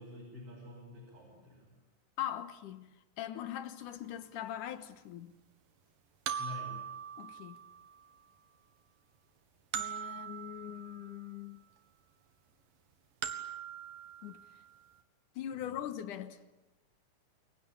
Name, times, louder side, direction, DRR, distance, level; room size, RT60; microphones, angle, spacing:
voice 1, 0.0-1.7 6.4-6.8 15.5-15.8, left 2 dB, 45° right, 7.7 m, -48 dB
voice 2, 2.2-5.3 7.2-7.6 9.7-11.6 14.2-14.4 15.4-16.4, left 11 dB, 75° left, 2.7 m, -41 dB
sound 1, 3.8-3.9 6.3-8.1 9.7-11.4 13.2-14.7, right 8 dB, 90° right, 3.4 m, -41 dB
29.5 x 22.5 x 8.8 m
omnidirectional pair, 3.8 m